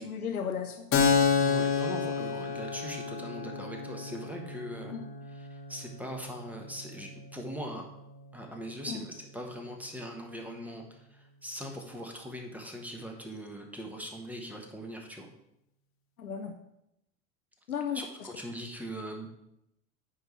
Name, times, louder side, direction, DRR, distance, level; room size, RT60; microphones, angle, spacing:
voice 1, 0.0-1.3 4.9-5.1 8.8-9.0 16.2-16.5 17.7-18.0, left 7 dB, 85° left, 5 dB, 0.7 m, -35 dB
Keyboard (musical), 0.9-8.2, left 5 dB, 30° left, 1.0 m, -31 dB
voice 2, 1.4-5.0 5.3-7.9 8.3-15.3 17.9-19.3, equal, 5° right, 2 dB, 1.2 m, -41 dB
9.1 x 3.7 x 4.4 m, 0.83 s
figure-of-eight pair, 80°, 43 cm